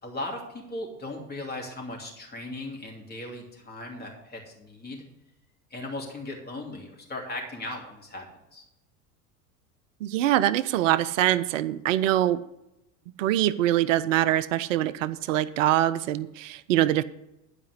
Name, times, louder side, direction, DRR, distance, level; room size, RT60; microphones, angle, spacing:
voice 1, 0.0-5.0 5.7-8.6, left 2 dB, 20° left, 0 dB, 2.8 m, -37 dB
voice 2, 10.0-12.4 13.2-17.0, right 13 dB, 50° right, 16 dB, 0.6 m, -24 dB
11.5 x 5.1 x 8.0 m, 0.89 s
figure-of-eight pair, 80°, 49 cm